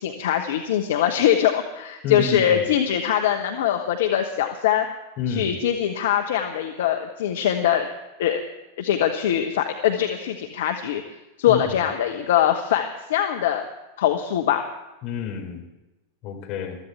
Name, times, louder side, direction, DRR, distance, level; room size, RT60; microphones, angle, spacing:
voice 1, 0.0-4.9 5.3-7.9 8.2-8.4 8.8-11.0 11.4-13.6 14.0-14.6, left 10 dB, 55° left, 4 dB, 1.1 m, -22 dB
voice 2, 2.0-2.7 5.2-5.5 11.5-11.8 15.0-15.6 16.2-16.8, left 6 dB, 40° left, 1 dB, 3.7 m, -29 dB
22.0 x 14.0 x 3.5 m, 1.0 s
figure-of-eight pair, 90°, 0 cm